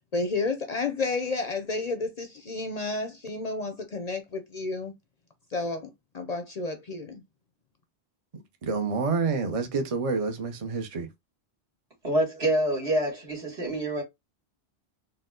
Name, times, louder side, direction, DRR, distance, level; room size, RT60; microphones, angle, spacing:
voice 1, 0.1-4.9 5.5-7.2, left 3 dB, 50° left, 0.6 m, -31 dB
voice 2, 8.6-11.1, right 4 dB, 40° right, 0.7 m, -28 dB
voice 3, 12.0-14.0, right 1 dB, 75° right, 2.4 m, -26 dB
4.3 x 2.1 x 3.7 m
omnidirectional pair, 1.1 m